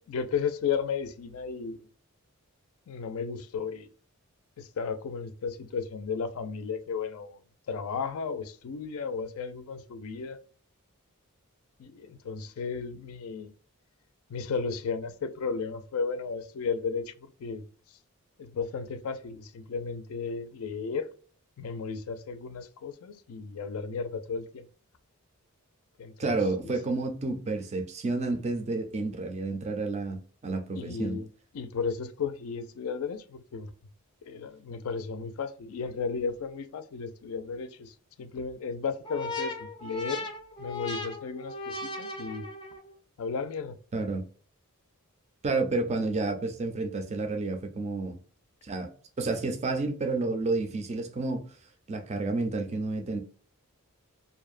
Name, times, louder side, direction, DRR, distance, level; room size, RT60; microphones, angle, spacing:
voice 1, 0.1-1.9 2.9-3.9 4.6-7.4 7.7-10.4 11.8-13.5 14.3-17.7 18.4-21.1 21.6-24.7 26.0-26.7 30.8-31.3 31.5-33.7 34.2-40.2 40.6-42.5 43.2-43.8, left 5 dB, 70° left, 0.4 m, -34 dB
voice 2, 26.2-31.2 43.9-44.2 45.4-48.2 48.6-48.9 49.2-51.5 51.9-53.2, right 3 dB, 30° right, 0.4 m, -30 dB
sound 1, 39.0-42.9, left 2 dB, 20° left, 0.5 m, -37 dB
2.6 x 2.1 x 2.4 m
head